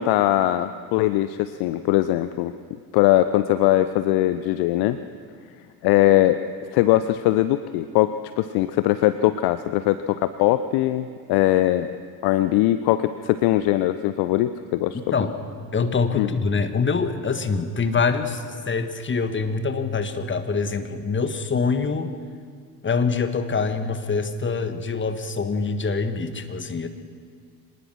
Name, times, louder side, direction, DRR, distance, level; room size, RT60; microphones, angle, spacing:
voice 1, 0.0-2.5 2.9-5.0 5.8-6.4 6.7-11.9 12.2-15.0 16.2-16.3, left 14 dB, 50° left, 13 dB, 0.7 m, -21 dB
voice 2, 14.9-15.3 15.7-22.1 22.8-26.9, left 4 dB, 25° left, 9 dB, 1.6 m, -25 dB
24.5 x 19.5 x 6.2 m, 2.1 s
figure-of-eight pair, 55°, 49 cm